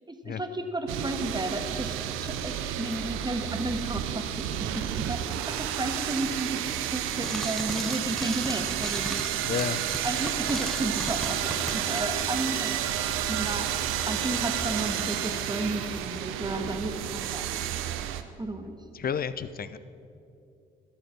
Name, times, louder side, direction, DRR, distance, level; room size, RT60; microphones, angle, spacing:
voice 1, 0.1-2.0 2.2-9.4 10.0-12.8 13.3-13.7 14.1-17.4 18.4-18.8, right 2 dB, 20° right, 6 dB, 1.6 m, -33 dB
sound 1, 0.9-18.2, right 11 dB, 75° right, 0.7 m, -31 dB
Frying (food), 7.2-12.7, equal, ahead, 0.7 m, -38 dB
voice 2, 9.4-9.8 18.9-19.8, left 7 dB, 45° left, 15 dB, 0.7 m, -31 dB
sound 2, 10.9-16.0, left 1 dB, 20° left, 3.0 m, -43 dB
12.5 x 10.0 x 6.2 m, 2.5 s
hypercardioid pair, 45°, 21 cm